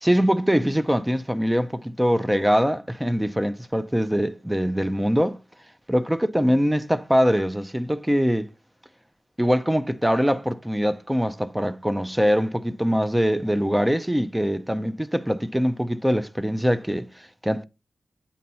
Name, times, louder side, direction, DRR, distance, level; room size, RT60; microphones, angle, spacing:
voice 1, 0.0-5.4 5.9-8.5 9.4-17.6, equal, 5° right, 0.4 m, -23 dB
8.4 x 2.9 x 5.4 m
wide cardioid pair, 175°, 0 cm